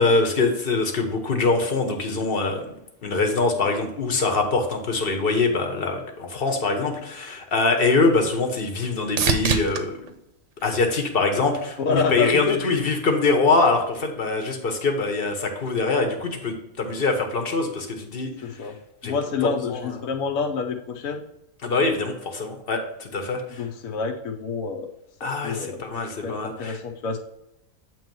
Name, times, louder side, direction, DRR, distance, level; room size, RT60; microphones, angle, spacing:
voice 1, 0.0-2.6 3.0-10.1 10.6-18.3 19.0-19.1 19.4-19.9 21.6-23.6 25.2-26.8, left 3 dB, 45° left, 4 dB, 1.2 m, -23 dB
sound 1, 7.4-11.7 12.2-12.8 20.6-20.7, right 6 dB, 60° right, 0.9 m, -30 dB
voice 2, 11.8-12.8 18.4-18.7 19.0-21.2 23.5-24.9 25.2-25.8 26.2-27.2, left 5 dB, 75° left, 1 dB, 1.2 m, -27 dB
8.3 x 3.1 x 5.3 m, 0.85 s
omnidirectional pair, 1.5 m